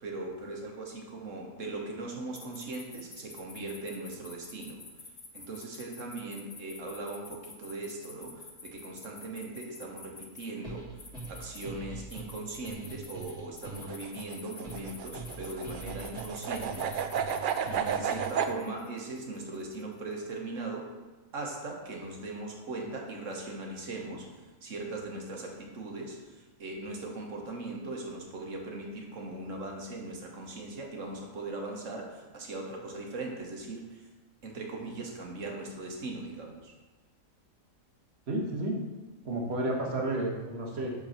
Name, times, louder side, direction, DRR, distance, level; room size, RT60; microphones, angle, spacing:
voice 1, 0.0-4.8 5.3-16.9 17.7-20.9 21.3-34.1 34.4-36.7, right 2 dB, 65° right, 0 dB, 1.5 m, -39 dB
sound 1, 2.3-10.5 11.0-11.7 12.1-19.9, left 4 dB, 35° left, 0.6 m, -49 dB
sound 2, 10.6-18.5, right 4 dB, 5° right, 2.4 m, -44 dB
sound 3, 13.8-18.5, right 7 dB, 85° right, 0.4 m, -32 dB
voice 2, 38.3-38.8 39.2-40.9, right 1 dB, 50° right, -1 dB, 1.6 m, -31 dB
7.9 x 3.9 x 5.6 m, 1.2 s
omnidirectional pair, 1.4 m